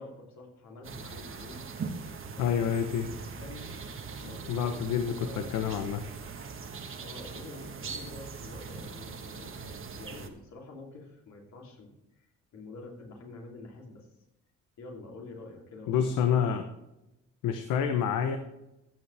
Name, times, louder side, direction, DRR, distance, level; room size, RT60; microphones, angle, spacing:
voice 1, 0.0-1.6 2.3-3.8 4.2-6.1 7.0-12.3 12.5-14.1 14.8-16.7, left 3 dB, 65° left, -1 dB, 3.1 m, -47 dB
sound 1, 0.8-10.3, right 5 dB, 45° right, 1.3 m, -41 dB
voice 2, 2.4-3.0 4.5-6.0 15.9-16.6 17.4-18.4, left 8 dB, 90° left, 7 dB, 0.9 m, -28 dB
15.0 x 7.5 x 3.4 m, 0.91 s
cardioid pair, 90°, 30 cm